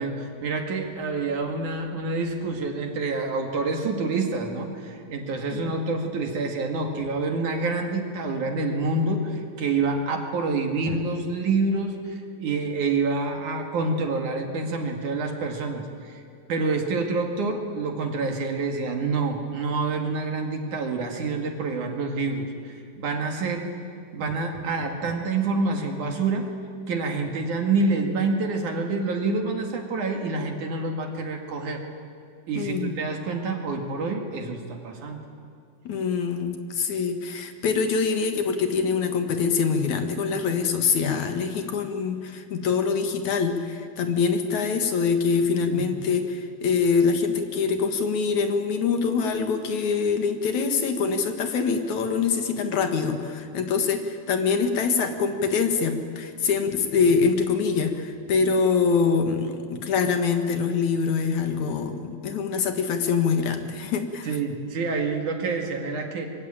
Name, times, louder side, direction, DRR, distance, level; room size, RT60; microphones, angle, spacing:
voice 1, 0.0-16.2 16.5-23.7 24.1-26.5 26.9-31.8 32.5-35.2 45.6-45.9 64.3-66.3, right 3 dB, 50° right, 3 dB, 2.8 m, -27 dB
voice 2, 32.6-33.0 35.9-64.3, left 5 dB, 55° left, 6 dB, 2.2 m, -24 dB
25.0 x 23.5 x 8.9 m, 2.4 s
omnidirectional pair, 5.5 m